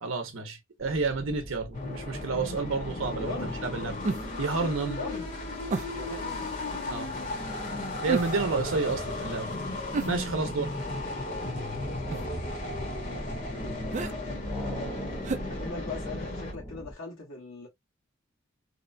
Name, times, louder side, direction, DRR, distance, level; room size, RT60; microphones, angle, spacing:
voice 1, 0.0-3.9 4.4-5.0 6.9-7.1 8.0-9.5 10.0-10.7, right 4 dB, 75° right, 0.7 m, -30 dB
sound 1, 0.8-16.9, equal, 10° left, 0.6 m, -42 dB
sound 2, 1.7-16.5, left 2 dB, 40° left, 1.0 m, -35 dB
voice 2, 3.2-3.5 4.9-5.3 5.9-6.5 12.0-12.3 13.0-13.3 13.6-14.8 15.5-17.7, left 3 dB, 90° left, 1.2 m, -40 dB
sound 3, 4.0-4.5 5.7-6.1 8.1-8.6 9.9-10.7 12.1-12.4 13.9-14.1 15.2-16.2 16.5-16.6, right 3 dB, 35° right, 0.3 m, -33 dB
2.8 x 2.1 x 2.5 m
head